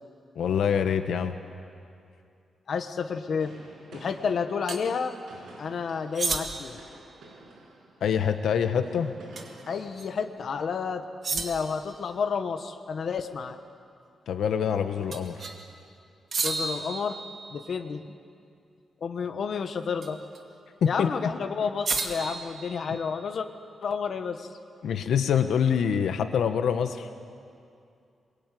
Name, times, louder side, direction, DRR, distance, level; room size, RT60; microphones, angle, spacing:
voice 1, 0.3-1.4 8.0-9.1 14.3-15.4 20.8-21.1 24.8-27.1, left 7 dB, 80° left, 7 dB, 1.3 m, -25 dB
voice 2, 2.7-3.5 3.9-5.1 5.6-6.8 9.7-13.6 16.4-17.2 17.5-18.1 19.0-20.2 20.9-23.5 23.8-24.5, left 6 dB, 50° left, 6 dB, 1.4 m, -30 dB
sound 1, 3.4-9.9, right 2 dB, 80° right, 7.7 m, -50 dB
sound 2, 4.7-4.8 6.1-6.8 9.4-9.6 10.0-10.1 11.2-11.8 15.1-15.6 16.3-17.7 20.0-20.4 21.9-23.2, right 4 dB, 45° right, 2.3 m, -32 dB
27.0 x 22.5 x 9.4 m, 2.4 s
wide cardioid pair, 165°, 0 cm